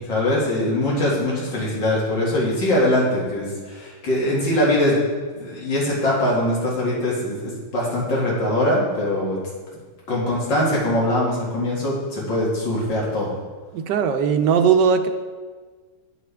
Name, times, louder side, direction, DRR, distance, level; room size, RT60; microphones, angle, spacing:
voice 1, 0.1-5.0 5.3-9.4 10.1-13.3, left 1 dB, 85° left, -6 dB, 2.9 m, -22 dB
voice 2, 13.7-15.1, right 6 dB, 75° right, 7 dB, 1.3 m, -18 dB
11.0 x 6.7 x 3.4 m, 1.5 s
omnidirectional pair, 2.0 m